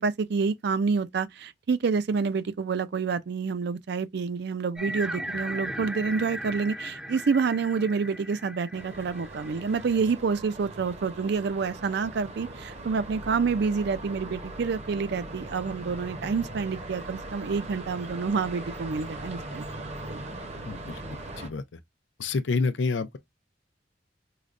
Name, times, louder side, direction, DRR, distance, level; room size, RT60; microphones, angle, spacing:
voice 1, 0.0-20.2, right 5 dB, 65° right, 0.4 m, -28 dB
sound 1, 4.8-10.0, right 1 dB, 5° right, 0.5 m, -37 dB
sound 2, 8.7-21.5, right 2 dB, 40° right, 0.7 m, -40 dB
voice 2, 20.6-21.0 21.4-21.6 22.2-23.2, left 4 dB, 85° left, 0.5 m, -28 dB
4.8 x 2.1 x 2.4 m
head